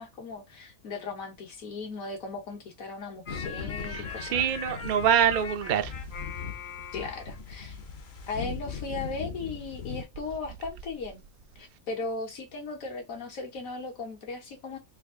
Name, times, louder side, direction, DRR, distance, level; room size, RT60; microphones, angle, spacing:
voice 1, 0.0-4.5 6.9-7.8 8.3-11.2 11.6-14.8, left 3 dB, 75° left, 1.5 m, -37 dB
sound 1, 3.3-10.0, left 5 dB, 55° left, 0.9 m, -38 dB
voice 2, 3.9-5.9, right 8 dB, 65° right, 0.4 m, -25 dB
3.5 x 2.4 x 3.6 m
omnidirectional pair, 1.5 m